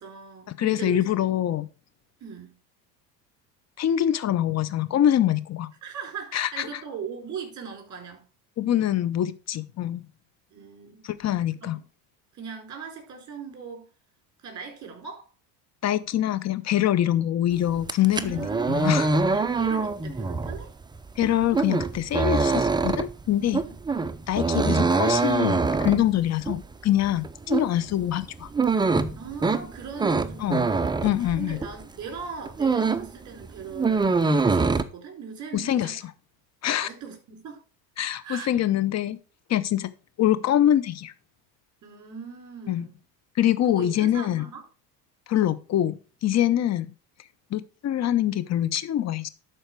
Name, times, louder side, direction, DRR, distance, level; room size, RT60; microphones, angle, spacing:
voice 1, 0.0-1.1 2.2-2.5 5.8-8.3 10.5-11.1 11.6-11.7 12.3-13.9 14.4-15.3 18.1-19.0 19.3-20.7 23.6-23.8 29.1-30.9 31.4-36.0 36.8-37.6 38.2-38.5 41.8-43.0 43.7-44.6 46.6-46.7, right 6 dB, 35° right, 4.2 m, -39 dB
voice 2, 0.6-1.7 3.8-5.7 6.3-6.8 8.6-10.1 11.0-11.8 15.8-18.4 18.7-19.1 21.2-23.6 24.3-28.5 30.4-30.7 31.0-31.6 35.5-36.0 36.6-36.9 38.0-39.2 39.5-39.9 40.2-41.1 42.7-42.9 43.4-44.4 45.3-46.9 47.5-49.3, left 11 dB, 35° left, 0.8 m, -24 dB
sound 1, 17.8-31.8 32.2-33.2 33.4-34.8, right 4 dB, 10° right, 0.5 m, -24 dB
11.5 x 4.5 x 4.7 m
hypercardioid pair, 85°, 48 cm